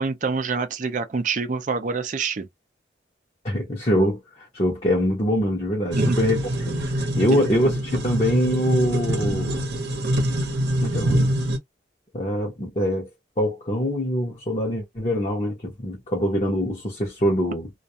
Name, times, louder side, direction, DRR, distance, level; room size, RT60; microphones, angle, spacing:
voice 1, 0.0-2.5 5.9-6.2 7.3-7.6, right 4 dB, 45° right, 0.4 m, -26 dB
voice 2, 3.4-9.6 10.8-11.3 12.1-13.1 13.4-17.7, equal, 35° left, 0.8 m, -24 dB
sound 1, 5.9-11.6, right 1 dB, 70° right, 0.8 m, -24 dB
2.4 x 2.2 x 2.6 m
head